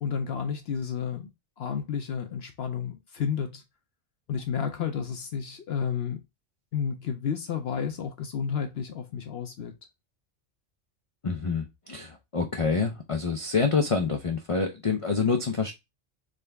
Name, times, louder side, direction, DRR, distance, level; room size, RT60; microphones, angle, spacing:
voice 1, 0.0-1.3 1.6-3.6 4.3-6.2 6.7-9.7, left 7 dB, 65° left, 0.9 m, -31 dB
voice 2, 11.2-15.7, left 4 dB, 45° left, 0.4 m, -27 dB
3.8 x 3.3 x 3.3 m
omnidirectional pair, 1.2 m